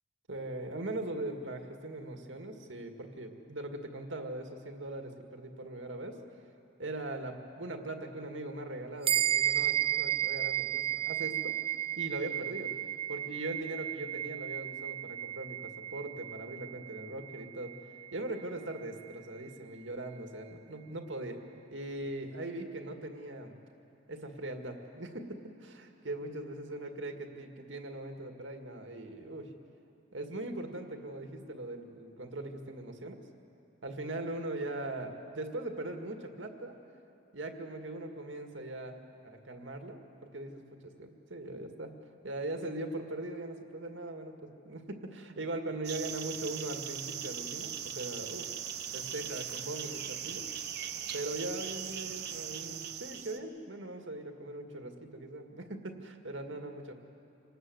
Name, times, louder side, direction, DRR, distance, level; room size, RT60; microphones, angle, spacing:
voice 1, 0.3-6.2 6.8-11.6 12.0-12.7 13.1-17.7 18.1-21.4 21.7-23.5 24.1-29.5 30.1-33.2 33.8-36.8 37.3-41.9 42.2-48.5 48.9-50.5 51.1-56.9, right 2 dB, 85° right, 4 dB, 2.0 m, -40 dB
sound 1, 9.0-18.8, right 12 dB, 30° right, 0.5 m, -34 dB
sound 2, 45.8-53.4, right 9 dB, 60° right, 1.1 m, -39 dB
26.5 x 19.5 x 7.8 m, 2.7 s
head